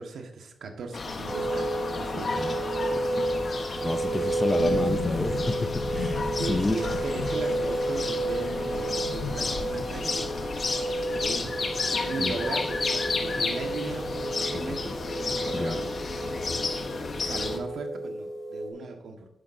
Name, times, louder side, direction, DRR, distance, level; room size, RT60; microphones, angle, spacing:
voice 1, 0.0-1.7 2.0-2.4 6.4-10.5 11.1-11.6 12.1-15.0 15.4-15.9 17.2-19.3, right 4 dB, 75° right, 4 dB, 1.5 m, -37 dB
sound 1, 0.9-17.6, left 4 dB, 40° left, 1.1 m, -32 dB
sound 2, 1.3-18.7, right 1 dB, 30° right, 3.7 m, -32 dB
voice 2, 3.2-3.5 3.8-6.8 12.2-12.4 14.5-14.8 15.5-15.8, left 2 dB, 15° left, 10 dB, 0.5 m, -30 dB
sound 3, 4.6-13.4 13.7-13.8 14.0-15.1 15.3-15.4, left 4 dB, 80° left, 1.2 m, -37 dB
12.0 x 10.0 x 2.7 m, 0.79 s
wide cardioid pair, 170°, 0 cm